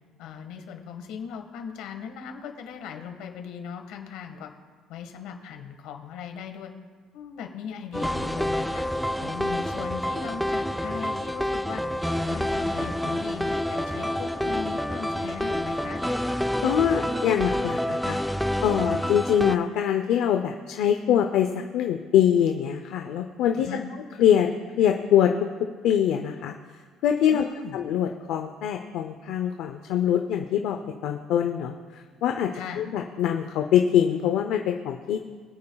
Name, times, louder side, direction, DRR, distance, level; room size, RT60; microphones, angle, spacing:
voice 1, 0.2-4.5 4.9-6.7 7.1-8.8 9.2-11.8 12.3-16.0 23.6-23.8 27.3-27.8 32.5-32.8, left 7 dB, 85° left, 5 dB, 1.5 m, -38 dB
sound 1, 7.9-19.6, left 1 dB, ahead, 0.4 m, -28 dB
voice 2, 16.6-18.2 18.6-23.7 24.2-24.5 24.8-25.5 25.8-26.5 27.0-27.4 27.7-32.5 32.8-35.2, left 9 dB, 70° left, 4 dB, 0.6 m, -24 dB
24.0 x 8.7 x 2.3 m, 1.5 s
cardioid pair, 160°, 0 cm